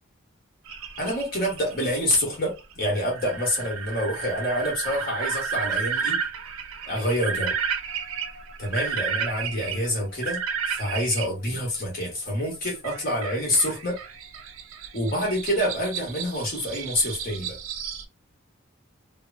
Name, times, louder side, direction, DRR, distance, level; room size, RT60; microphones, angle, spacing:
sound 1, 0.7-11.3 12.8-18.0, right 6 dB, 75° right, 0.5 m, -32 dB
voice 1, 1.0-6.2 6.8-7.6 8.6-14.0 14.9-17.6, equal, 45° left, 1.3 m, -27 dB
2.9 x 2.1 x 2.6 m
head